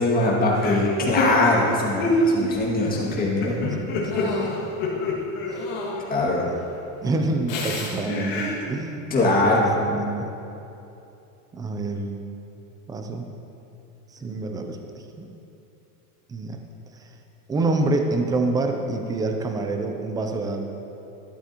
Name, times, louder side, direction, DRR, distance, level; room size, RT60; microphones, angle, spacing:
voice 1, 0.0-3.8 4.1-4.3 6.1-6.4 9.1-9.7, left 2 dB, 20° left, -4 dB, 2.0 m, -22 dB
sound 1, 0.5-6.4 7.5-8.7, left 1 dB, 45° left, 1.9 m, -27 dB
voice 2, 3.2-4.6 5.5-5.6 6.5-6.6 7.0-9.3 9.8-10.3 11.5-12.2 12.9-13.3 14.1-14.8 15.2-15.3 16.3-16.6 17.5-20.6, right 2 dB, 10° right, 4 dB, 0.3 m, -27 dB
12.5 x 12.0 x 2.9 m, 2.8 s
supercardioid pair, 150°, 44 cm